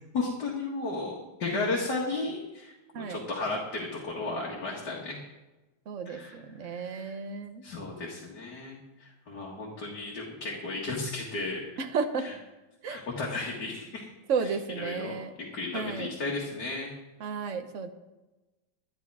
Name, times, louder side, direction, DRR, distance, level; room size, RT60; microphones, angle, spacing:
voice 1, 0.1-2.7 3.1-5.2 6.1-7.1 7.6-11.6 12.2-12.3 12.9-14.1 14.4-14.5 14.8-15.2 15.5-16.9, left 3 dB, 55° left, -3 dB, 2.4 m, -34 dB
voice 2, 5.9-7.6 11.8-12.3 12.8-13.0 14.3-15.3 15.7-16.1 17.2-17.9, right 5 dB, 45° right, 7 dB, 1.1 m, -33 dB
12.0 x 11.5 x 4.9 m, 1.1 s
omnidirectional pair, 2.2 m